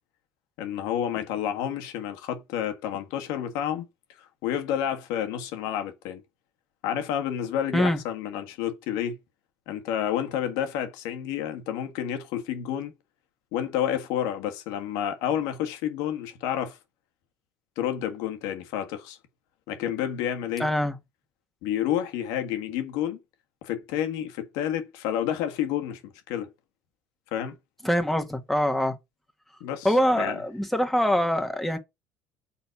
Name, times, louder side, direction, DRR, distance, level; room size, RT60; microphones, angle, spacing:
voice 1, 0.6-3.9 4.4-6.2 6.8-9.2 9.7-12.9 13.5-16.8 17.8-19.2 19.7-20.7 21.6-23.2 23.6-26.5 27.3-27.6 29.6-30.4, left 10 dB, 75° left, 1.6 m, -30 dB
voice 2, 20.6-20.9 27.8-29.0 29.8-31.8, equal, 5° left, 1.7 m, -24 dB
6.8 x 4.0 x 5.9 m
hypercardioid pair, 75°, 6 cm